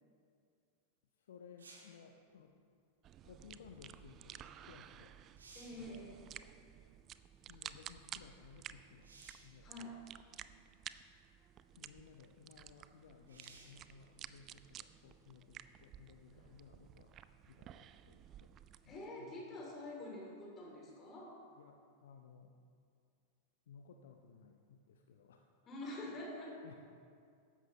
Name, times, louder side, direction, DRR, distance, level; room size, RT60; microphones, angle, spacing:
voice 1, 1.2-2.5 3.2-5.1 5.7-6.0 7.5-9.1 9.4-9.7 11.8-17.1 17.5-18.5 18.8-19.6 21.6-22.5 23.7-25.5 26.6-26.7, left 6 dB, 60° left, 4 dB, 0.6 m, -59 dB
sound 1, 1.6-2.0 4.7-4.8 5.2-5.9 9.0-9.6 10.6-10.7 13.3-13.8 17.4-17.5, right 3 dB, 70° right, 1.9 m, -58 dB
sound 2, 3.0-19.1, right 10 dB, 30° right, 0.4 m, -54 dB
voice 2, 5.5-6.2 9.6-10.0 18.9-21.4 25.7-26.6, left 1 dB, 25° left, -2 dB, 3.0 m, -47 dB
14.5 x 10.5 x 3.1 m, 2.3 s
figure-of-eight pair, 90°, 0 cm